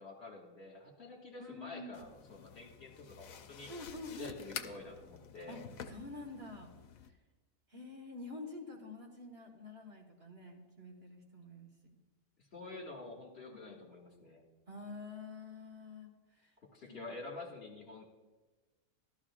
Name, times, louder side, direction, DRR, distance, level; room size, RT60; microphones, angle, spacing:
voice 1, 0.0-3.7 4.1-5.6 12.5-14.4 16.7-18.0, left 3 dB, 50° left, -2 dB, 2.1 m, -48 dB
voice 2, 1.4-2.1 3.6-4.6 5.5-5.6 5.9-6.7 7.1-7.2 7.7-12.0 13.5-13.6 14.7-16.5 16.9-17.0, left 2 dB, 45° right, -1 dB, 1.7 m, -48 dB
sound 1, 1.9-7.1, left 7 dB, 75° left, 1.1 m, -49 dB
13.5 x 13.0 x 2.4 m, 1.2 s
omnidirectional pair, 1.5 m